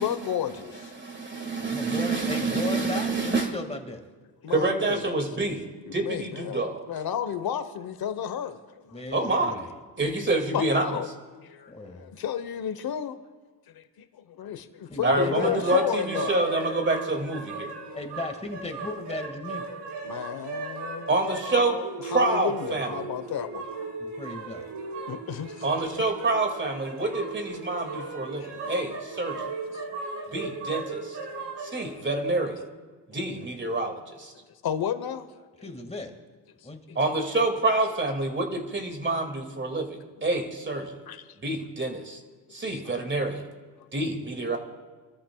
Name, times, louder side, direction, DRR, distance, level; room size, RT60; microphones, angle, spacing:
voice 1, 0.0-0.9 4.4-5.0 5.9-8.6 8.8-9.0 10.5-11.1 11.4-13.2 13.7-16.4 20.0-23.7 25.1-25.7 28.4-28.7 29.7-30.3 31.5-31.6 31.9-32.0 34.6-35.3 39.3-39.4 41.1-41.2 42.6-42.9, left 9 dB, 60° left, 1.1 m, -32 dB
voice 2, 0.9-3.5 4.5-6.8 9.1-9.7 10.0-10.9 15.0-17.7 21.1-23.0 25.6-29.5 30.3-31.2 31.6-32.6 33.1-34.3 37.0-41.0 41.4-42.2 42.5-43.5 43.9-44.6, right 2 dB, 25° right, 2.2 m, -27 dB
voice 3, 1.6-4.0 8.9-9.7 11.7-12.1 14.9-15.6 17.9-19.6 24.0-24.7 35.6-36.1 36.6-37.0, left 2 dB, 15° left, 1.9 m, -36 dB
sound 1, 15.5-31.9, right 3 dB, 85° right, 4.9 m, -36 dB
29.0 x 13.5 x 2.3 m
cardioid pair, 100°, 41 cm